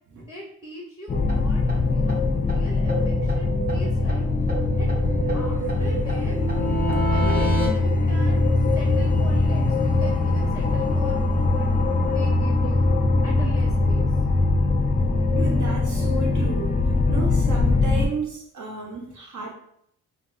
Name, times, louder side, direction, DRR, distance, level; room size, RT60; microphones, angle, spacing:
voice 1, 0.3-4.3 4.8-5.0 5.3-6.5 7.1-8.5 8.7-11.7 12.0-12.9 13.2-14.1, equal, 10° right, -2 dB, 0.8 m, -41 dB
sound 1, 1.1-18.1, left 3 dB, 25° left, 0.4 m, -22 dB
sound 2, 1.3-1.4 1.7-1.8 2.1-2.2 2.5-2.6 2.9-4.2 4.5-7.7, right 1 dB, 25° right, 1.3 m, -28 dB
voice 2, 15.4-16.7 17.1-19.5, right 4 dB, 55° right, 0 dB, 0.8 m, -32 dB
3.4 x 2.0 x 2.5 m, 0.68 s
supercardioid pair, 60°, 36 cm